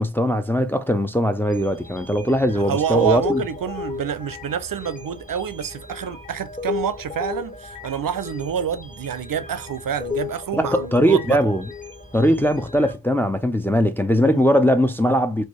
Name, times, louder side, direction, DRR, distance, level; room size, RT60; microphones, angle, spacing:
voice 1, 0.0-3.4 10.5-11.6 12.1-15.4, equal, 5° left, 0.3 m, -20 dB
sound 1, 1.5-12.9, left 4 dB, 20° left, 0.7 m, -34 dB
voice 2, 2.7-11.4 14.2-14.5, right 8 dB, 65° right, 0.5 m, -27 dB
2.6 x 2.3 x 3.0 m
cardioid pair, 45°, 37 cm